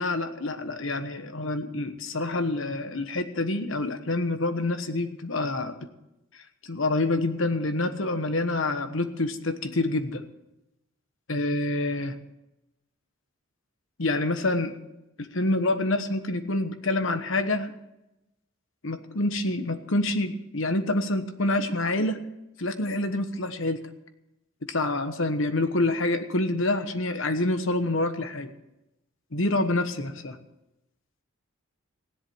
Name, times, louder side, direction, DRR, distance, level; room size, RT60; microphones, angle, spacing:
voice 1, 0.0-5.9 6.7-10.2 11.3-12.2 14.0-14.7 15.2-17.7 18.8-22.2 22.6-23.8 24.7-28.5 29.3-30.4, left 2 dB, 65° left, 9 dB, 1.2 m, -27 dB
16.0 x 11.0 x 6.4 m, 0.91 s
head